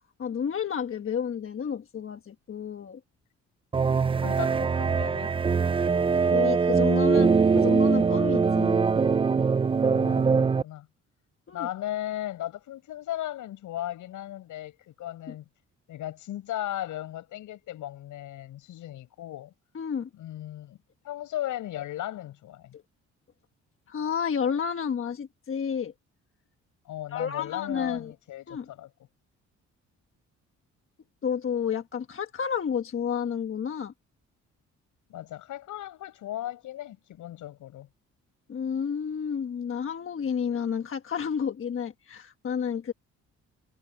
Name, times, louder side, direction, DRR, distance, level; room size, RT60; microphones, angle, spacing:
voice 1, 0.2-3.0 6.3-8.8 11.5-11.7 15.3-15.4 19.7-20.1 23.9-25.9 27.1-28.1 28.5-28.7 31.2-33.9 38.5-42.9, left 7 dB, 45° left, 1.4 m, -30 dB
sound 1, 3.7-10.6, right 5 dB, 20° right, 0.4 m, -22 dB
voice 2, 4.2-5.3 9.8-10.9 11.5-15.5 15.9-19.5 20.1-20.8 21.0-22.8 26.9-28.9 35.1-37.9, left 13 dB, 80° left, 7.3 m, -36 dB
cardioid pair, 90°, 30 cm